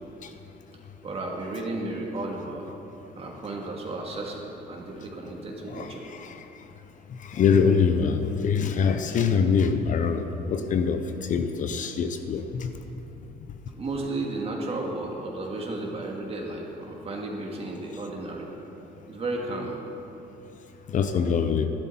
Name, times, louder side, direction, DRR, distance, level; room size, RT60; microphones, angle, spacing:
voice 1, 1.0-2.7 3.2-6.0 13.7-18.5 19.1-19.8, right 2 dB, 35° right, 0 dB, 2.1 m, -33 dB
voice 2, 5.7-6.4 7.2-12.7 20.9-21.7, left 6 dB, 50° left, 8 dB, 0.7 m, -24 dB
12.5 x 11.5 x 4.3 m, 2.9 s
cardioid pair, 110°, 17 cm